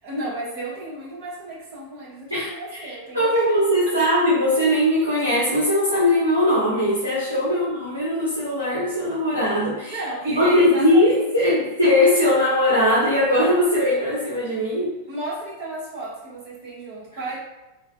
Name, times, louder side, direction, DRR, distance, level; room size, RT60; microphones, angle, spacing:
voice 1, 0.0-3.6 4.0-4.1 7.5-7.6 9.9-11.6 15.1-17.4, right 1 dB, 45° right, -8 dB, 1.4 m, -33 dB
voice 2, 2.8-10.0 10.2-15.0, left 1 dB, 85° right, -7 dB, 0.7 m, -20 dB
3.2 x 2.2 x 2.7 m, 1.0 s
figure-of-eight pair, 90°, 0 cm